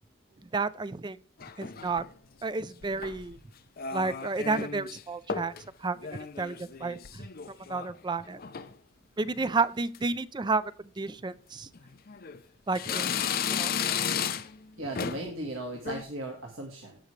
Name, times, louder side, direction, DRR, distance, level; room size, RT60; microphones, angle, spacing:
voice 1, 0.5-1.2 1.6-2.0 2.4-3.4 3.9-5.5 5.8-7.3 7.7-8.4 9.2-11.7 12.7-13.1 13.5-13.7, right 3 dB, 20° right, 0.4 m, -31 dB
sound 1, 1.4-2.1 2.8-3.3 3.8-5.0 5.3-5.6 6.0-7.9 8.2-8.7 9.3-9.6 9.9-10.0 11.0-11.1 11.8-12.4 12.7-14.6 15.0-15.3 15.7-16.0, left 7 dB, 45° left, 0.6 m, -34 dB
voice 2, 14.8-17.0, right 1 dB, 80° right, 1.8 m, -37 dB
17.0 x 6.1 x 3.2 m
head